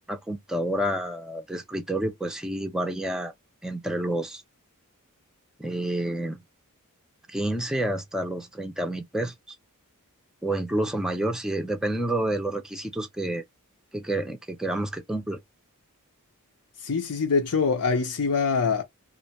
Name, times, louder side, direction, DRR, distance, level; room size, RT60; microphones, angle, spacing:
voice 1, 0.1-3.3 3.6-4.4 5.6-6.4 7.3-9.6 10.4-13.4 13.9-15.4, right 1 dB, 5° right, 0.4 m, -29 dB
voice 2, 16.8-18.8, left 5 dB, 85° left, 0.7 m, -24 dB
2.5 x 2.1 x 2.8 m
head